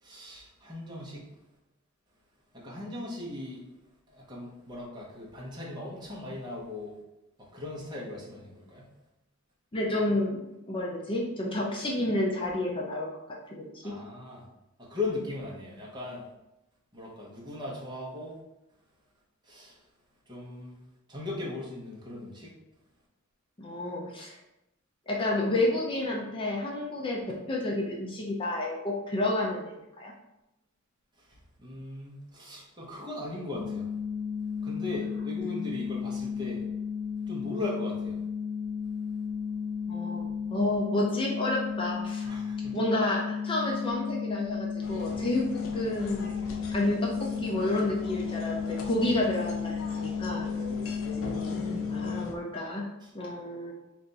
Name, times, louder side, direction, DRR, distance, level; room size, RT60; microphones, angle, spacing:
voice 1, 0.0-1.3 2.5-3.6 4.1-6.9 7.4-8.9 13.8-14.4 14.8-16.3 16.9-18.4 19.4-19.8 20.3-20.8 21.1-22.5 31.2-33.9 34.6-36.6 37.3-38.2 42.2-42.8 50.8-51.0 53.0-53.1, left 2 dB, 20° right, -5 dB, 1.0 m, -38 dB
voice 2, 9.7-13.1 13.6-13.9 23.6-24.4 25.1-30.1 39.9-42.3 42.7-45.4 45.7-46.3 46.7-50.5 51.9-53.7, left 1 dB, 25° left, -2 dB, 0.5 m, -30 dB
sound 1, 33.5-52.2, left 6 dB, 55° right, 0.7 m, -33 dB
sound 2, 44.8-52.3, left 2 dB, 85° left, 0.6 m, -41 dB
3.4 x 2.6 x 4.0 m, 0.92 s
head